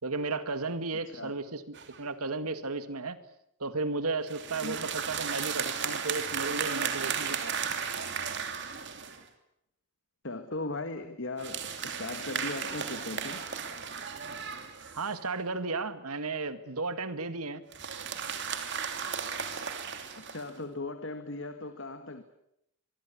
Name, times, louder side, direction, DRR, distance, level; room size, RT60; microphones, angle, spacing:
voice 1, 0.0-3.2 3.6-7.7 14.9-17.6, right 3 dB, 90° right, 11 dB, 2.1 m, -34 dB
sound 1, 1.7-2.0 4.3-9.2 11.4-15.2 17.7-20.5, right 7 dB, 50° right, 3.0 m, -35 dB
voice 2, 10.2-13.5 20.1-22.2, left 2 dB, 55° left, 9 dB, 1.7 m, -38 dB
24.0 x 24.0 x 8.5 m, 0.79 s
head